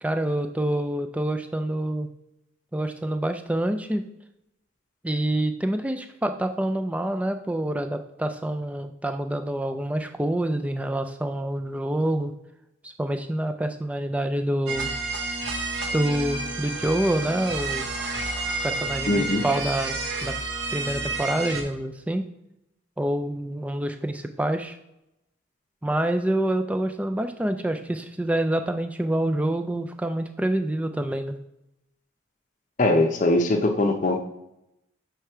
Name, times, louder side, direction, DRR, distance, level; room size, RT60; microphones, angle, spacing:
voice 1, 0.0-2.1 2.7-4.0 5.0-12.3 12.8-14.9 15.9-17.9 18.6-20.3 20.7-22.3 23.0-24.8 25.8-31.4, right 1 dB, 5° right, 6 dB, 0.3 m, -27 dB
sound 1, 14.7-21.6, right 3 dB, 60° right, 1.0 m, -30 dB
voice 2, 19.1-19.4 32.8-34.2, left 2 dB, 40° left, 5 dB, 0.6 m, -21 dB
6.5 x 3.3 x 4.5 m, 0.87 s
head